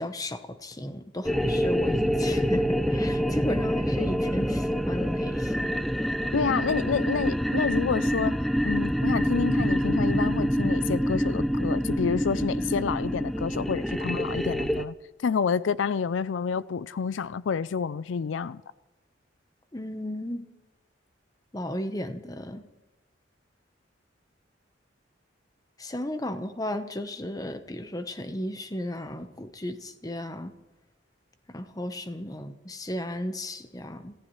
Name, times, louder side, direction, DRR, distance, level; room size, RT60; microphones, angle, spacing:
voice 1, 0.0-5.8 19.7-20.5 21.5-22.6 25.8-30.5 31.5-34.1, left 1 dB, 20° left, 0.9 m, -34 dB
sound 1, 1.2-14.8, equal, ahead, 0.5 m, -26 dB
voice 2, 6.3-8.4 8.6-14.9 15.2-18.6, left 6 dB, 75° left, 0.4 m, -28 dB
28.5 x 15.0 x 3.1 m
head